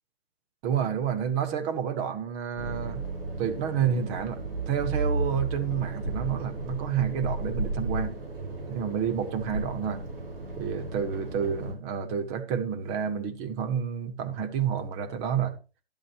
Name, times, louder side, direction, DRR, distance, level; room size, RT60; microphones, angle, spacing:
voice 1, 0.6-3.1 3.4-8.1 8.7-10.0 10.6-15.5, right 8 dB, 20° right, 0.9 m, -29 dB
sound 1, 2.6-11.7, right 2 dB, 65° right, 5.6 m, -34 dB
12.0 x 11.0 x 3.0 m
hypercardioid pair, 150°, 31 cm